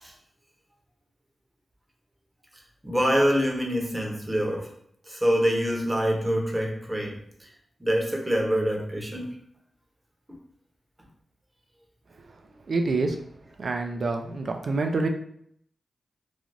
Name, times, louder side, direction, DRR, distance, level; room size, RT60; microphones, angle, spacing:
voice 1, 2.8-4.7 5.1-7.2 7.8-9.3, equal, 15° right, 0 dB, 0.8 m, -25 dB
voice 2, 12.7-13.2 13.6-15.1, right 3 dB, 65° right, 5 dB, 0.4 m, -26 dB
3.2 x 2.3 x 2.5 m, 0.67 s
cardioid pair, 65°, 0 cm